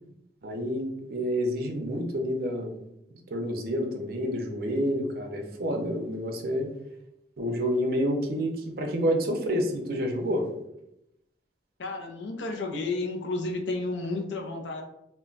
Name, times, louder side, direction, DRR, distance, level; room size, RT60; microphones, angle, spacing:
voice 1, 0.4-2.7 3.1-6.7 7.4-10.5, equal, 55° right, 3 dB, 0.5 m, -29 dB
voice 2, 11.8-14.8, left 2 dB, 85° left, 4 dB, 0.5 m, -32 dB
2.1 x 2.1 x 3.7 m, 0.82 s
head